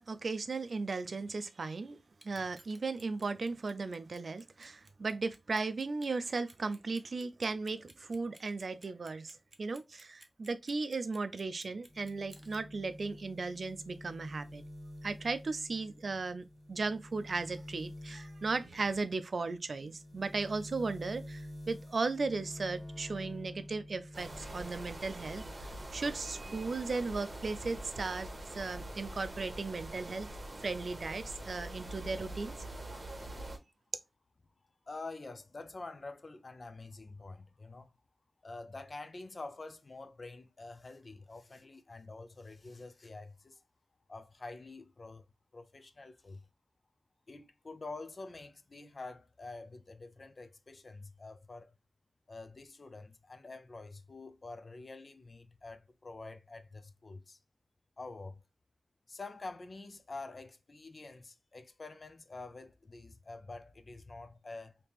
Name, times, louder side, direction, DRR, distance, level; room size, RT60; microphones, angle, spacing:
voice 1, 0.1-2.0 2.2-14.6 15.0-28.3 28.5-30.3 30.6-32.5, right 3 dB, 65° right, 0.4 m, -36 dB
Clock, 2.1-12.6, right 1 dB, 25° right, 0.7 m, -58 dB
sound 1, 11.9-24.8 25.2-26.2, left 1 dB, 15° left, 1.4 m, -49 dB
sound 2, 24.1-33.6, right 1 dB, 40° right, 1.0 m, -44 dB
voice 2, 34.9-37.9 38.4-43.6 44.1-45.2 45.5-46.4 47.3-51.7 52.3-57.4 58.0-58.4 59.1-64.8, left 3 dB, 50° left, 0.5 m, -47 dB
3.5 x 2.8 x 2.9 m
wide cardioid pair, 90°, 0 cm